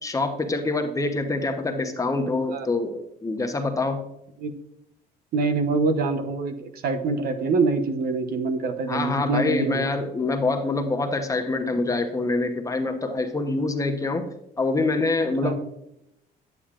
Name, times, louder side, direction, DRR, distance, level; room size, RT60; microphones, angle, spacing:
voice 1, 0.0-4.0 8.9-14.2 14.6-15.5, left 3 dB, 20° left, 5 dB, 0.9 m, -25 dB
voice 2, 5.3-9.9 15.4-15.5, right 3 dB, 65° right, 9 dB, 0.9 m, -25 dB
9.2 x 8.7 x 2.5 m, 0.81 s
cardioid pair, 110°, 17 cm